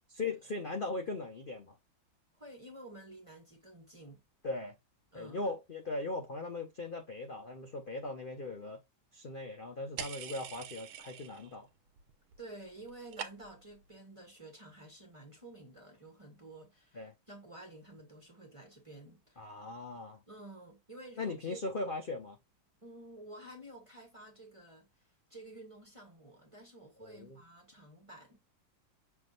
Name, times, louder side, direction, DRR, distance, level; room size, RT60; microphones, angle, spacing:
voice 1, 0.0-1.8 4.4-4.8 5.1-8.8 9.1-11.7 16.9-17.1 19.4-20.2 21.2-22.4 27.0-27.4, left 2 dB, 65° left, 0.5 m, -39 dB
voice 2, 2.4-4.2 5.1-5.5 12.4-19.7 20.3-21.6 22.8-28.4, right 2 dB, 25° right, 0.8 m, -51 dB
sound 1, 10.0-11.6 11.9-12.4 12.7-13.7, right 8 dB, 80° right, 1.6 m, -44 dB
6.3 x 3.5 x 2.3 m
omnidirectional pair, 2.2 m